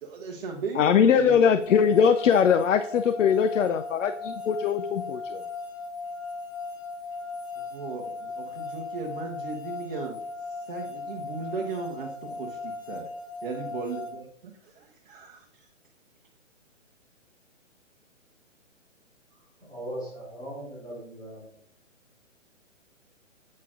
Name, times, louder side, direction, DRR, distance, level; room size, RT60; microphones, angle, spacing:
voice 1, 0.0-1.5 7.6-13.1 13.4-15.7, right 4 dB, 40° right, 0 dB, 0.9 m, -37 dB
voice 2, 0.8-5.4, left 7 dB, 75° left, 10 dB, 0.5 m, -21 dB
sound 1, 1.6-14.1, left 3 dB, 30° left, 1.1 m, -37 dB
voice 3, 19.6-21.4, right 1 dB, 10° left, -7 dB, 2.4 m, -38 dB
7.4 x 5.7 x 2.5 m, 0.69 s
hypercardioid pair, 145°, 38 cm